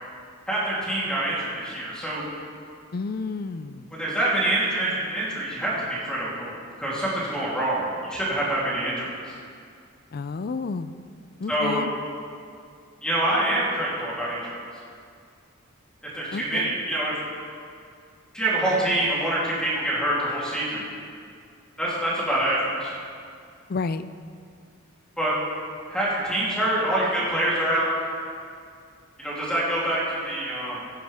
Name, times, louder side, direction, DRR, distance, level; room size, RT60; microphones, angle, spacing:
voice 1, 0.5-2.3 3.9-5.7 6.0-6.5 6.8-9.3 11.5-11.8 13.0-14.5 16.1-17.1 18.3-20.9 21.8-22.9 25.2-25.3 25.9-27.9 29.2-30.8, right 1 dB, 5° left, -8 dB, 3.2 m, -26 dB
voice 2, 2.9-3.9 10.1-11.0 11.4-11.9 16.3-16.8 23.7-24.0, left 4 dB, 45° left, 13 dB, 0.4 m, -30 dB
16.5 x 10.5 x 3.5 m, 2.3 s
head